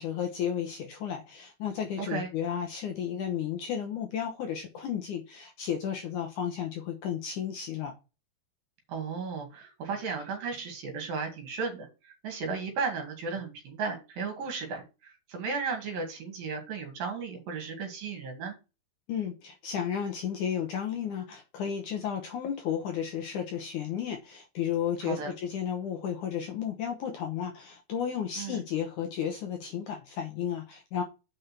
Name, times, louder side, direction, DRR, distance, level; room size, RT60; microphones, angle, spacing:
voice 1, 0.0-7.9 19.1-31.0, left 8 dB, 70° left, 2.1 m, -33 dB
voice 2, 2.0-2.3 8.9-18.6 25.0-25.3 28.4-28.6, right 5 dB, 65° right, 3.7 m, -35 dB
6.7 x 5.4 x 5.8 m
omnidirectional pair, 4.6 m